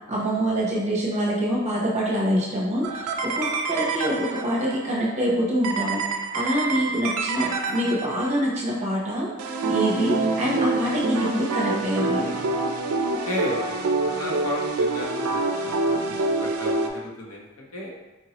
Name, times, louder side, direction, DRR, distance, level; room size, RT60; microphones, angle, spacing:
voice 1, 0.1-6.0 6.3-9.3 9.7-12.3, equal, 35° right, -5 dB, 0.9 m, -25 dB
sound 1, 2.8-4.8 5.6-8.5 9.4-16.9, right 3 dB, 90° right, 0.4 m, -26 dB
voice 2, 13.2-17.9, left 1 dB, 90° left, -2 dB, 0.9 m, -33 dB
4.4 x 2.8 x 2.9 m, 1.1 s
head